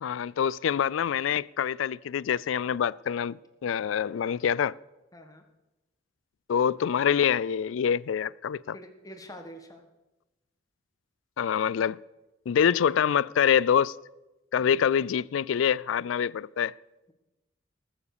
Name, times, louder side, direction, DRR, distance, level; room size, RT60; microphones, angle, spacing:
voice 1, 0.0-4.7 6.5-8.7 11.4-12.0 12.5-13.9 14.5-16.7, left 8 dB, 75° left, 0.3 m, -25 dB
voice 2, 5.1-5.4 8.7-9.9, equal, 20° left, 1.5 m, -46 dB
19.0 x 7.3 x 6.7 m
head